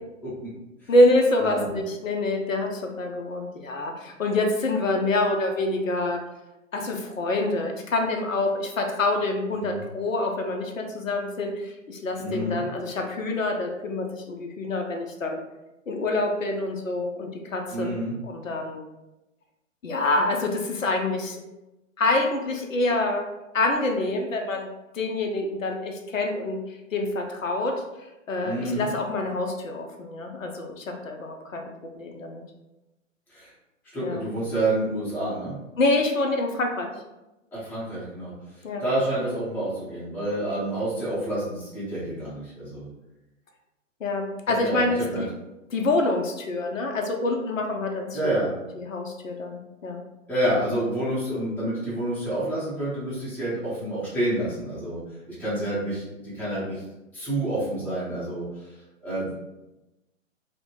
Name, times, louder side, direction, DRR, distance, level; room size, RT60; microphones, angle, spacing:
voice 1, 0.9-6.2 6.7-15.4 15.9-17.9 18.2-18.8 19.8-21.4 22.0-23.3 23.5-24.7 24.9-27.7 28.3-31.6 31.9-32.4 34.0-34.2 35.8-36.9 38.6-38.8 44.0-45.3 45.7-48.4 48.8-50.0, left 2 dB, 75° left, 3 dB, 0.6 m, -26 dB
voice 2, 1.4-1.7 9.5-9.8 12.2-12.6 17.7-18.1 28.4-28.9 33.3-33.5 33.9-35.5 37.5-38.3 38.8-42.9 44.6-45.2 48.1-48.5 50.3-55.0 55.3-56.8 57.1-58.7 59.0-59.4, right 1 dB, 5° left, -10 dB, 0.7 m, -28 dB
2.7 x 2.1 x 2.9 m, 0.97 s
figure-of-eight pair, 115°, 39 cm